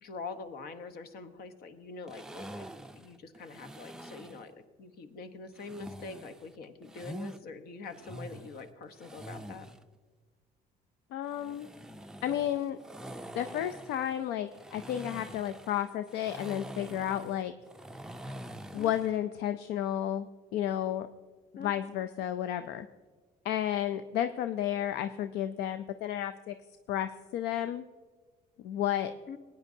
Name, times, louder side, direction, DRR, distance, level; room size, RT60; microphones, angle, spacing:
voice 1, 0.0-2.7 3.0-9.7 18.7-18.9 21.5-21.7 29.3-29.4, left 4 dB, 65° left, 9 dB, 1.0 m, -44 dB
sound 1, 2.1-4.5 5.6-7.4 7.8-9.8 11.2-19.2, equal, 5° right, 0.4 m, -45 dB
voice 2, 11.1-11.7 12.2-12.8 13.3-17.5 18.7-20.3 20.5-21.1 21.6-22.9 23.4-26.5 26.9-27.8 28.6-29.1, left 11 dB, 80° left, 10 dB, 0.4 m, -32 dB
18.5 x 9.4 x 2.7 m, 1.4 s
cardioid pair, 110°, 17 cm